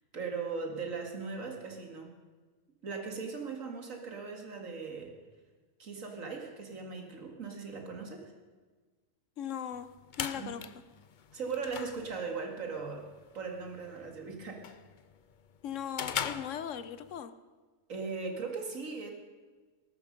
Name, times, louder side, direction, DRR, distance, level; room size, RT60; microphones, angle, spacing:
voice 1, 0.1-2.1 2.8-5.1 5.8-8.3 10.4-10.7 11.3-13.0 13.3-14.6 17.9-19.1, right 4 dB, 85° right, 3 dB, 2.4 m, -39 dB
voice 2, 9.4-9.9 10.2-10.6 15.6-17.3, left 9 dB, 70° left, 12 dB, 1.2 m, -38 dB
sound 1, 9.7-17.2, left 7 dB, 50° left, 0.7 m, -42 dB
20.0 x 12.0 x 5.3 m, 1.4 s
omnidirectional pair, 1.4 m